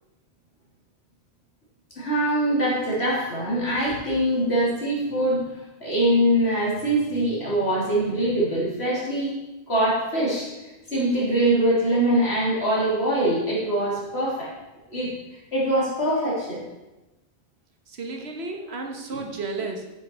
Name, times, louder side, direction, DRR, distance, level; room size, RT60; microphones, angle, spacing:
voice 1, 2.0-5.5 5.8-9.3 9.7-10.5 10.9-14.5 14.9-15.1 15.5-16.6 19.1-19.2, right 1 dB, 80° left, -5 dB, 3.6 m, -23 dB
voice 2, 17.9-19.9, right 3 dB, 75° right, 3 dB, 1.5 m, -33 dB
9.4 x 8.0 x 4.7 m, 1.0 s
omnidirectional pair, 1.1 m